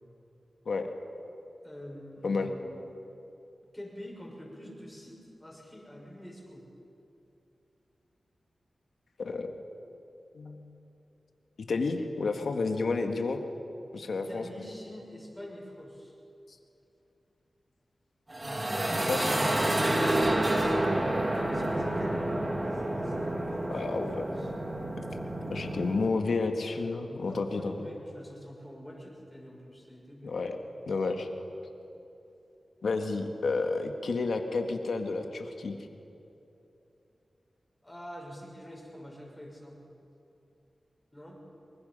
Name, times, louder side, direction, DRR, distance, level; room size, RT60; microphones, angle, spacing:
voice 1, 1.6-2.7 3.7-6.7 14.1-16.1 20.6-24.5 27.2-30.4 37.8-39.8 41.1-41.4, equal, 10° left, -1 dB, 6.2 m, -46 dB
voice 2, 9.2-9.5 10.3-10.7 11.6-13.4 13.9-14.6 19.1-19.4 23.7-24.2 25.5-27.7 30.2-30.6 30.9-31.3 32.8-35.8, left 3 dB, 80° left, 5 dB, 1.7 m, -31 dB
sound 1, 18.3-26.1, right 1 dB, 30° right, 2.3 m, -29 dB
23.5 x 21.5 x 5.6 m, 2.9 s
cardioid pair, 60°, 0 cm